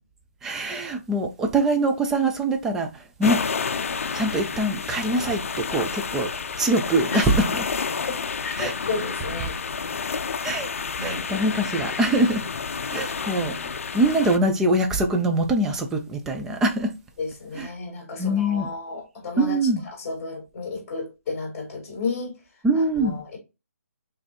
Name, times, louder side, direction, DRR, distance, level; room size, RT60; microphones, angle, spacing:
voice 1, 0.4-2.9 3.2-3.4 4.1-6.3 6.6-7.6 8.6-8.7 10.4-10.7 11.0-12.4 12.9-16.9 17.6-17.7 18.2-18.7 19.4-19.8 22.6-23.2, right 1 dB, 5° right, 0.4 m, -23 dB
sound 1, 3.2-14.4, left 5 dB, 60° left, 0.5 m, -30 dB
voice 2, 8.4-9.5 11.0-11.2 17.2-19.6 19.8-22.4 22.7-23.4, left 4 dB, 20° left, 2.2 m, -32 dB
4.1 x 3.2 x 2.8 m
hypercardioid pair, 160°, 8 cm